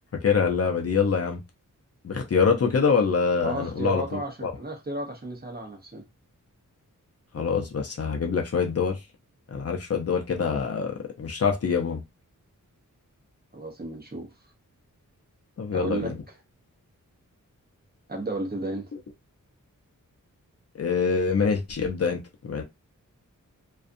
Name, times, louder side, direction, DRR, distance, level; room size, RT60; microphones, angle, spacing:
voice 1, 0.1-1.4 2.0-4.5 7.3-9.0 9.5-12.0 15.6-16.2 20.7-22.6, left 5 dB, 50° left, 0.6 m, -25 dB
voice 2, 3.4-6.0 13.5-14.3 15.7-16.1 18.1-18.9, right 2 dB, 30° right, 0.8 m, -33 dB
2.5 x 2.3 x 2.5 m
wide cardioid pair, 125°, 32 cm